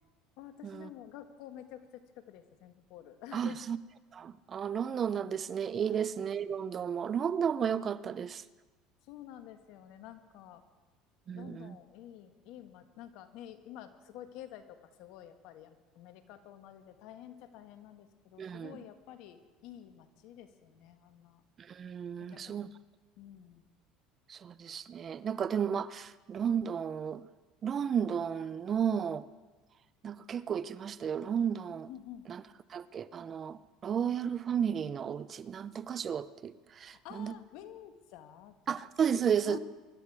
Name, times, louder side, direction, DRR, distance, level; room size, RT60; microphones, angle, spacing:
voice 1, 0.4-3.6 5.8-6.0 9.1-10.6 11.3-21.4 22.2-22.7 23.2-23.6 31.9-32.3 36.8-38.8 39.3-39.6, left 11 dB, 70° left, 8 dB, 1.5 m, -50 dB
voice 2, 3.3-3.8 4.1-8.4 11.3-11.8 18.4-18.8 21.6-22.7 24.3-27.3 27.6-29.2 30.0-31.9 32.3-32.4 32.7-37.3 38.7-39.6, right 8 dB, 40° right, 16 dB, 0.7 m, -33 dB
24.0 x 12.5 x 4.8 m, 1.3 s
supercardioid pair, 90°, 0 cm